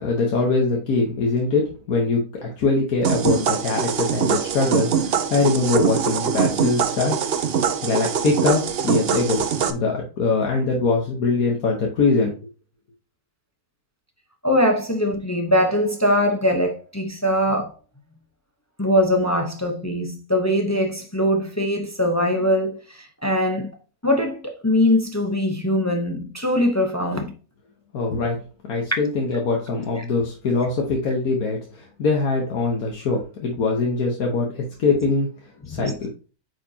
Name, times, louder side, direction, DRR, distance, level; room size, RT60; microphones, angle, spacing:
voice 1, 0.0-7.2 7.8-12.3 27.9-28.4 28.7-35.3 35.7-36.1, left 3 dB, 75° left, 1.6 m, -22 dB
sound 1, 3.0-9.7, right 7 dB, 55° right, 0.7 m, -23 dB
voice 2, 14.4-17.7 18.8-22.8 23.2-23.7 24.0-27.3 35.7-35.9, left 1 dB, 15° left, 0.5 m, -21 dB
8.9 x 4.9 x 2.8 m
omnidirectional pair, 1.6 m